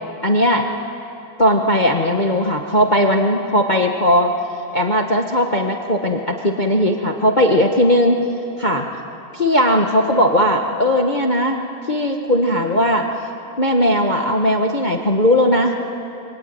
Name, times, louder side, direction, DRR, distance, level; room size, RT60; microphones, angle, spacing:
voice 1, 0.2-0.7 1.4-4.3 4.7-8.2 8.6-8.9 9.3-11.6 11.9-13.1 13.6-15.8, equal, 25° left, 3 dB, 1.2 m, -17 dB
26.0 x 24.5 x 9.3 m, 2.8 s
omnidirectional pair, 2.3 m